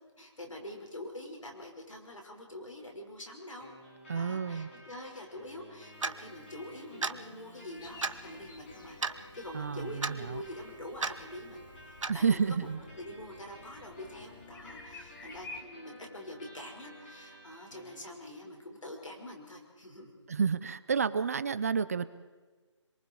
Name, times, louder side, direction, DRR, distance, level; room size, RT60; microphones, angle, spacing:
voice 1, 0.2-3.7 4.1-12.7 13.0-20.2, left 1 dB, 90° left, 2 dB, 5.8 m, -45 dB
sound 1, 3.6-18.6, equal, 25° left, 6.2 m, -53 dB
voice 2, 4.1-4.7 9.5-10.4 12.1-12.8 20.3-22.0, right 6 dB, 30° right, 14 dB, 0.6 m, -30 dB
Clock, 6.0-6.2 7.0-7.2 8.0-8.2 9.0-9.2 10.0-10.1 11.0-11.2 12.0-12.2, right 4 dB, 85° right, 1.1 m, -32 dB
sound 2, 7.8-15.6, left 3 dB, 40° left, 1.8 m, -52 dB
26.5 x 23.0 x 4.8 m, 1.4 s
figure-of-eight pair, 165°, 16 cm